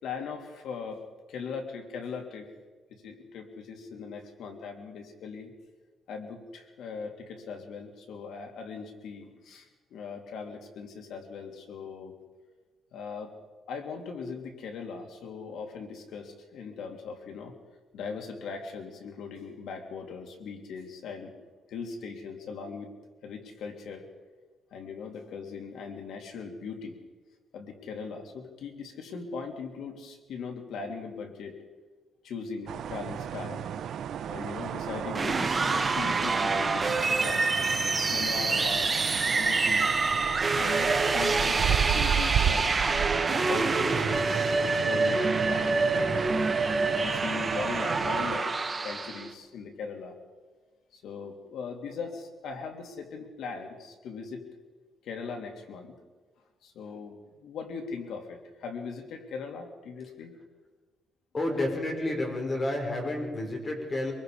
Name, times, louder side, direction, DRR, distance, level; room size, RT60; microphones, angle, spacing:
voice 1, 0.0-2.5 2.9-5.5 6.1-12.1 12.9-13.4 13.7-17.5 17.9-21.3 21.7-22.9 23.2-24.1 24.7-27.0 27.5-31.6 32.2-33.7 34.3-37.7 38.1-39.0 39.3-39.9 40.5-46.3 46.9-50.1 50.9-54.5 55.0-55.9 56.6-60.3, left 5 dB, 75° left, 3 dB, 3.3 m, -39 dB
sound 1, 32.7-48.4, right 9 dB, 65° right, 0.8 m, -33 dB
sound 2, 35.1-49.3, right 3 dB, 25° right, 1.4 m, -26 dB
voice 2, 61.3-64.1, left 1 dB, 30° left, 1 dB, 5.9 m, -30 dB
24.0 x 22.5 x 5.2 m, 1.3 s
cardioid pair, 130°, 0 cm